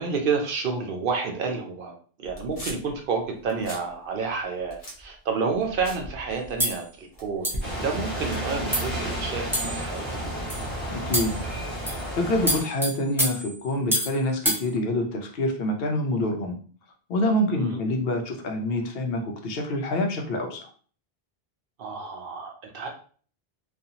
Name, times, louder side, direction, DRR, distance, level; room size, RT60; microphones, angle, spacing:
voice 1, 0.0-1.9 2.2-10.2 17.5-17.8 21.8-22.9, right 5 dB, 65° right, 2 dB, 0.7 m, -30 dB
sound 1, 2.2-3.0 3.4-3.9 4.2-6.8 7.1-7.7, equal, 40° left, 0.8 m, -39 dB
sound 2, 6.6-6.8 7.4-7.7 8.3-8.4 8.7-9.0 9.5-9.9 10.5-10.7 11.1-11.4 11.9-12.1 12.5-14.2 14.4-14.6, equal, 5° right, 0.6 m, -27 dB
sound 3, 7.6-12.6, right 1 dB, 20° right, 1.0 m, -32 dB
voice 2, 10.9-11.3 12.2-16.6 17.1-20.7, left 1 dB, 70° left, 4 dB, 0.8 m, -26 dB
2.5 x 2.3 x 2.7 m, 0.43 s
omnidirectional pair, 1.0 m